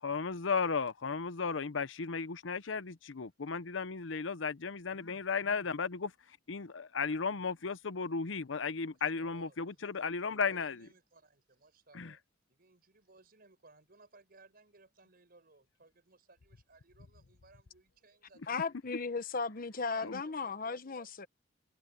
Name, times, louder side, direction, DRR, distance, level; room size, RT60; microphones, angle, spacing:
voice 1, 0.0-10.9 11.9-12.1 20.0-20.2, left 5 dB, 90° left, 0.8 m, -35 dB
voice 2, 8.9-12.2 12.5-18.5 19.8-21.3, right 3 dB, 55° right, 4.9 m, -62 dB
voice 3, 18.5-21.3, left 4 dB, 50° left, 1.0 m, -36 dB
head